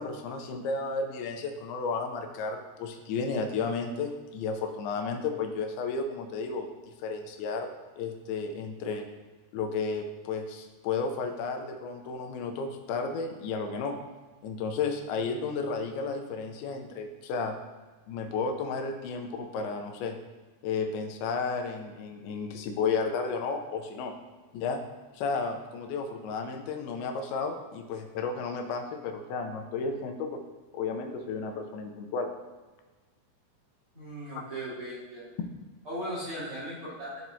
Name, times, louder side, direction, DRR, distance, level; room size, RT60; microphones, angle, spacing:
voice 1, 0.0-7.7 8.0-9.1 9.5-14.0 14.4-17.5 18.1-20.2 20.6-24.1 24.5-24.8 25.1-30.4 30.7-32.3, left 4 dB, 80° left, 4 dB, 2.5 m, -33 dB
voice 2, 33.9-35.3 35.8-37.3, right 1 dB, 40° right, -10 dB, 2.7 m, -37 dB
12.5 x 4.6 x 2.7 m, 1.3 s
omnidirectional pair, 4.6 m